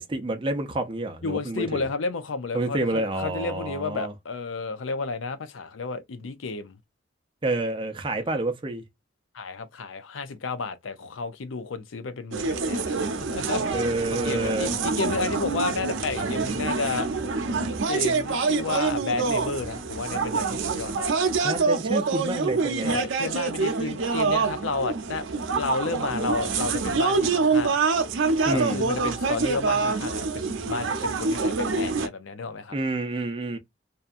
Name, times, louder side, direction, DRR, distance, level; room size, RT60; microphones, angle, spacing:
voice 1, 0.0-1.9 2.5-4.1 7.4-8.8 13.7-14.8 21.4-23.0 28.5-28.8 32.7-33.6, right 2 dB, 25° right, 0.5 m, -28 dB
voice 2, 1.2-6.8 9.3-13.8 14.1-17.1 17.9-21.2 22.8-28.0 28.5-32.8, left 4 dB, 85° left, 0.6 m, -32 dB
sound 1, 12.3-32.1, right 4 dB, 85° right, 0.6 m, -26 dB
2.7 x 2.3 x 2.4 m
head